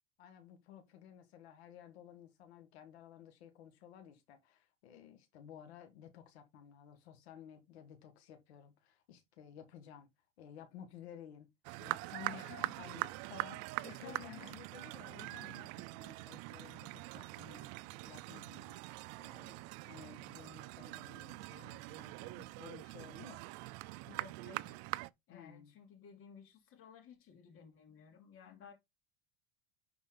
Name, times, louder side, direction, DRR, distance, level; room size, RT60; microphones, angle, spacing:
voice 1, 0.2-10.1 10.4-11.5 11.8-12.5 12.8-17.7 18.0-18.8 19.2-23.4 25.3-25.7, left 9 dB, 90° left, 1.8 m, -55 dB
sound 1, 11.6-25.1, right 22 dB, 55° right, 0.5 m, -43 dB
voice 2, 12.3-12.7 13.8-15.0 24.1-24.8 25.3-28.7, left 7 dB, 45° left, 2.6 m, -56 dB
10.5 x 4.3 x 3.9 m
supercardioid pair, 125°, 31 cm